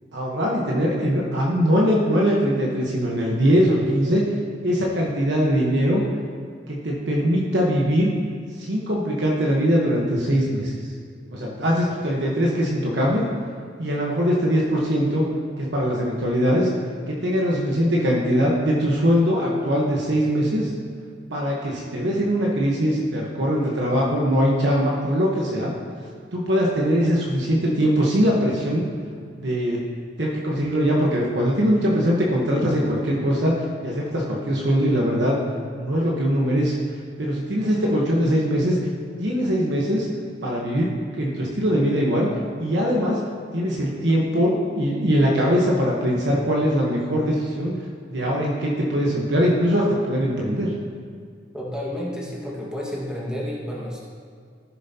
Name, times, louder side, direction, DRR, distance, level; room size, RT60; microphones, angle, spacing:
voice 1, 0.1-4.2 4.6-6.0 6.7-8.1 8.6-10.9 11.3-13.3 13.8-15.3 15.6-16.7 17.1-20.7 21.3-25.7 26.3-28.8 29.4-29.8 30.2-33.5 33.8-35.4 35.7-36.8 37.2-38.8 39.2-40.1 40.4-42.3 42.6-43.2 43.5-47.7 48.1-50.7, equal, 75° right, -3 dB, 1.2 m, -21 dB
voice 2, 51.5-54.0, equal, 5° right, -5 dB, 1.7 m, -30 dB
15.0 x 7.2 x 2.9 m, 2.1 s
head